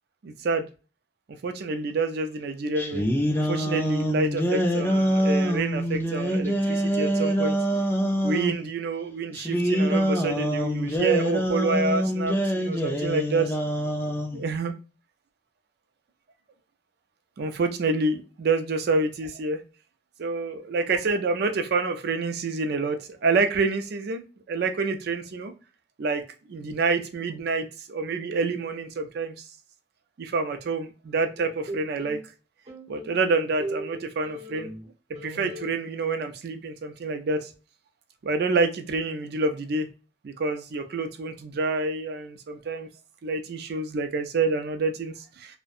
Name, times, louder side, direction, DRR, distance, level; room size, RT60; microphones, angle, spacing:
voice 1, 0.2-0.7 1.4-3.0 3.3-7.6 8.2-13.6 14.3-14.7 17.4-19.6 20.2-25.5 26.0-26.2 26.5-29.3 30.2-32.2 32.9-34.7 35.2-37.5 38.2-39.9 40.2-42.9 43.2-45.6, right 3 dB, 60° right, 7 dB, 0.4 m, -27 dB
sound 1, 2.8-8.6 9.4-14.4, equal, 10° left, 0.4 m, -25 dB
sound 2, 31.4-32.2 32.7-34.9 35.1-35.7, right 1 dB, 40° right, 0.8 m, -38 dB
2.6 x 2.1 x 2.4 m, 0.34 s
head